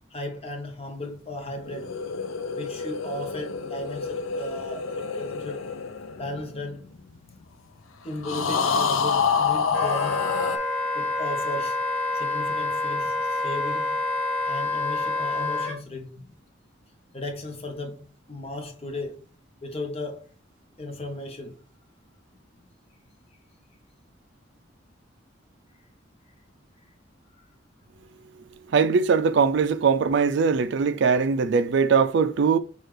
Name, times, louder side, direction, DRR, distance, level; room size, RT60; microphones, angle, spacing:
voice 1, 0.1-1.9 2.5-5.6 6.1-6.8 8.0-10.4 10.9-11.8 12.1-13.9 14.5-16.3 17.1-19.2 19.6-20.3 20.8-21.6, left 1 dB, 30° left, 0.9 m, -36 dB
sound 1, 1.6-7.2 8.2-10.6, left 5 dB, 80° left, 0.5 m, -27 dB
Wind instrument woodwind instrument, 9.7-15.8, left 2 dB, 10° left, 1.1 m, -27 dB
voice 2, 28.7-32.6, right 5 dB, 60° right, 0.3 m, -21 dB
6.5 x 2.4 x 3.1 m
head